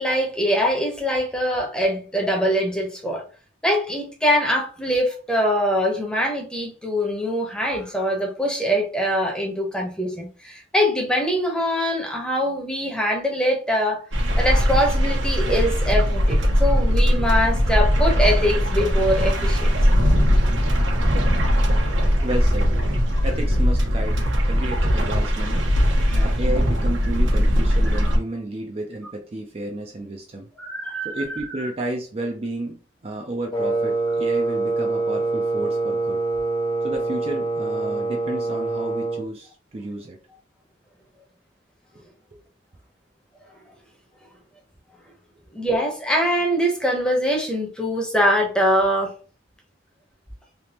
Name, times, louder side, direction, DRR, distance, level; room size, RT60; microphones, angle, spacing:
voice 1, 0.0-3.2 3.6-14.0 14.4-19.8 26.0-26.2 27.9-28.1 30.6-31.2 31.6-31.7 45.5-49.1, equal, 5° left, 0.8 m, -23 dB
sound 1, 14.1-28.2, equal, 90° right, 1.2 m, -20 dB
voice 2, 22.2-22.9 23.2-25.6 26.1-30.5 31.0-36.2 36.8-40.2, right 1 dB, 30° right, 0.4 m, -32 dB
Wind instrument woodwind instrument, 33.5-39.3, right 3 dB, 25° left, 0.6 m, -25 dB
3.4 x 2.9 x 2.8 m
head